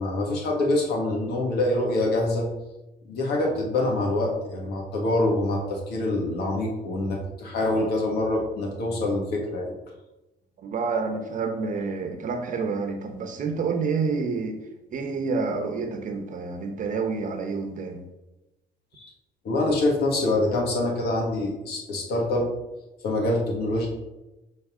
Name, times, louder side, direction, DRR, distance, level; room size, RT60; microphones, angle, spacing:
voice 1, 0.0-2.5 3.1-9.7 18.9-19.1 19.4-22.5 23.0-23.9, left 2 dB, 70° left, -1 dB, 1.8 m, -25 dB
voice 2, 10.6-14.6 14.9-18.0, right 4 dB, 50° right, 5 dB, 1.0 m, -28 dB
6.5 x 4.1 x 3.7 m, 1.0 s
cardioid pair, 110°, 17 cm